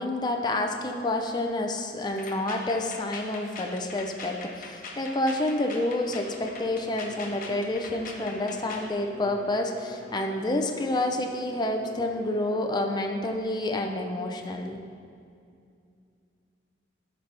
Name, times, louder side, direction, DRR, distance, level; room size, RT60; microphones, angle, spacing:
voice 1, 0.0-14.8, left 1 dB, 25° left, 3 dB, 0.6 m, -29 dB
sound 1, 2.1-8.9, left 3 dB, 50° left, 1.0 m, -42 dB
Bowed string instrument, 5.3-12.7, equal, 5° right, 1.2 m, -46 dB
12.5 x 5.3 x 3.3 m, 2.4 s
head